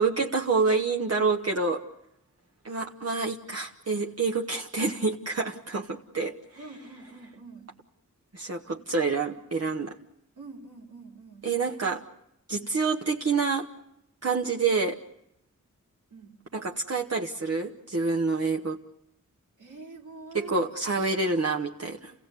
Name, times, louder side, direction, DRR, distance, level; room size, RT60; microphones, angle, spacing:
voice 1, 0.0-1.8 2.6-6.4 8.3-10.0 11.4-12.0 12.5-13.7 14.2-15.0 16.5-18.8 20.3-22.1, right 4 dB, 50° right, 1 dB, 1.0 m, -27 dB
voice 2, 6.5-7.7 8.8-8.9 10.3-11.6 12.5-12.7 16.1-16.4 19.6-20.7, right 3 dB, 85° right, 0 dB, 2.9 m, -46 dB
29.5 x 16.5 x 8.1 m, 0.86 s
wide cardioid pair, 85°, 31 cm